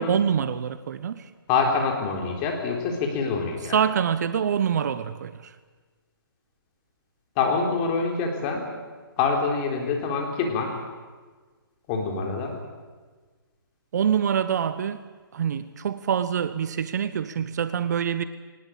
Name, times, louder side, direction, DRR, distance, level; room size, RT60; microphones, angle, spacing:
voice 1, 0.0-1.3 3.7-5.5 13.9-18.2, right 8 dB, 45° right, 13 dB, 1.0 m, -25 dB
voice 2, 1.5-3.7 7.4-8.7 9.2-10.8 11.9-12.5, left 4 dB, 25° left, 2 dB, 3.9 m, -25 dB
21.5 x 19.5 x 8.7 m, 1.4 s
hypercardioid pair, 155°, 12 cm